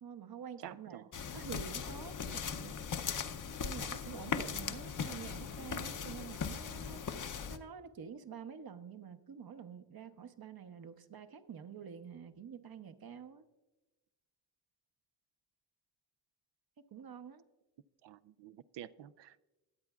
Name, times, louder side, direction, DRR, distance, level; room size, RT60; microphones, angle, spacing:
voice 1, 0.0-1.0 1.3-2.7 3.6-7.0 7.5-13.4 16.9-17.4, right 7 dB, 55° right, 0.9 m, -48 dB
voice 2, 0.6-1.4 18.0-19.5, right 11 dB, 75° right, 0.5 m, -51 dB
sound 1, 1.1-7.6, left 6 dB, 45° left, 0.7 m, -39 dB
19.5 x 8.0 x 2.4 m
cardioid pair, 55°, 43 cm